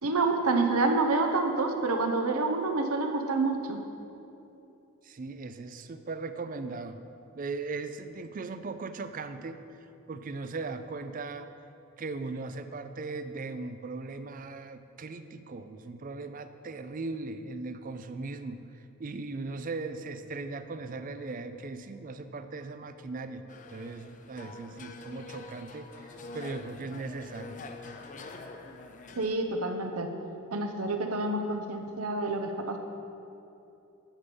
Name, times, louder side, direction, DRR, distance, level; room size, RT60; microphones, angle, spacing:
voice 1, 0.0-3.8 29.1-30.1 30.5-32.8, right 3 dB, 90° right, 5 dB, 0.9 m, -28 dB
voice 2, 5.0-7.0 7.4-9.6 10.1-11.5 12.0-23.4 23.7-27.6, right 3 dB, 40° right, 10 dB, 0.4 m, -38 dB
sound 1, 23.5-29.4, left 3 dB, 35° left, 0.6 m, -45 dB
10.0 x 6.9 x 5.3 m, 2.8 s
head